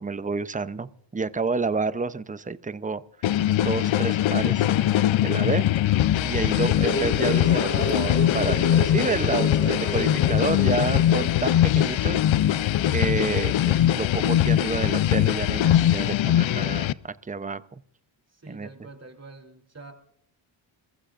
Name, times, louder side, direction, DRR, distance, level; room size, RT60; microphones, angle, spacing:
voice 1, 0.0-3.0 3.6-5.7 6.2-17.8 18.5-18.7, right 4 dB, 15° right, 14 dB, 0.7 m, -30 dB
sound 1, 3.2-16.9, left 12 dB, 70° left, 0.6 m, -22 dB
sound 2, 6.8-12.0, left 1 dB, 30° left, 1.9 m, -31 dB
voice 2, 18.3-19.9, right 3 dB, 30° right, 3 dB, 3.4 m, -46 dB
27.5 x 15.0 x 2.5 m, 0.69 s
cardioid pair, 75°, 49 cm